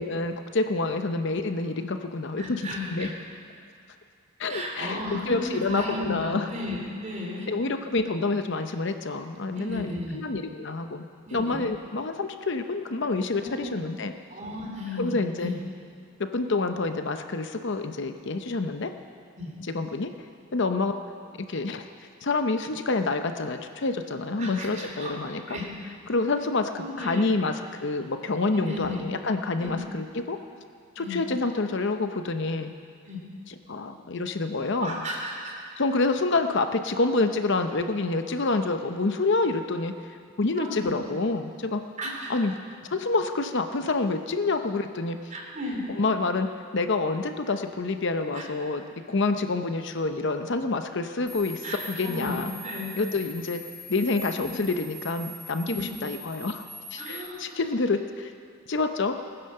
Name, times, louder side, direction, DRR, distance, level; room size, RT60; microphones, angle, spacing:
voice 1, 0.0-3.1 4.4-6.5 7.5-11.0 11.3-14.1 14.9-15.5 16.2-18.9 19.6-20.1 20.5-21.0 21.5-21.9 22.2-25.6 26.1-30.4 31.0-32.7 33.5-35.0 35.8-41.8 42.3-42.6 42.9-45.2 45.9-46.5 46.7-52.5 53.0-53.6 53.9-58.3 58.7-59.2, left 3 dB, 55° left, 7 dB, 0.7 m, -28 dB
voice 2, 2.4-3.1 4.5-7.5 9.5-10.2 11.2-11.7 13.3-13.7 14.3-15.6 19.4-19.5 24.4-25.1 25.5-25.6 26.8-27.4 28.5-29.0 29.6-29.8 31.0-31.2 33.0-33.2 34.8-35.5 40.6-40.9 42.0-42.3 45.3-45.9 48.3-48.4 51.6-52.9 54.4-54.5 55.6-55.8 57.0-57.6, left 1 dB, 35° right, -2 dB, 3.4 m, -34 dB
sound 1, 51.3-57.3, right 1 dB, ahead, 1.1 m, -42 dB
19.5 x 10.0 x 6.6 m, 2.3 s
head